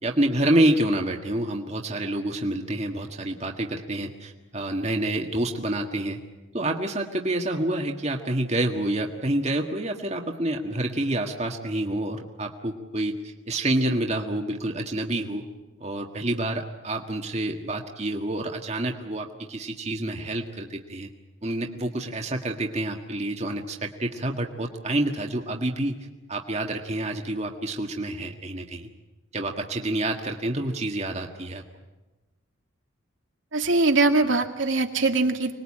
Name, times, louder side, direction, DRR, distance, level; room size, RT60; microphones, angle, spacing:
voice 1, 0.0-6.2 6.5-15.4 15.8-21.1 21.4-28.9 29.3-31.6, right 1 dB, 35° right, 2 dB, 1.7 m, -28 dB
voice 2, 33.5-35.5, right 3 dB, 75° right, 3 dB, 2.3 m, -22 dB
25.5 x 20.5 x 8.7 m, 1.1 s
head